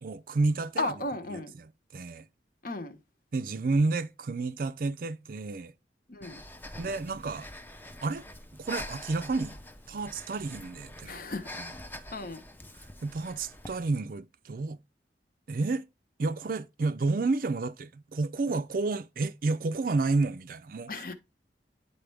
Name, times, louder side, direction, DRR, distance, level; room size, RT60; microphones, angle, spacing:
voice 1, 0.0-1.0 1.3-2.2 3.3-5.7 6.8-7.5 8.0-8.2 8.6-9.6 9.9-11.2 11.5-11.7 12.8-14.8 15.5-15.9 16.2-21.0, right 3 dB, 50° right, 0.4 m, -30 dB
voice 2, 0.8-1.5 2.6-3.0 6.1-6.4 11.1-11.5 12.1-12.4 20.9-21.1, left 2 dB, 50° left, 1.0 m, -34 dB
Breathing, 6.2-13.9, left 1 dB, 10° left, 0.6 m, -45 dB
10.0 x 4.3 x 3.4 m
head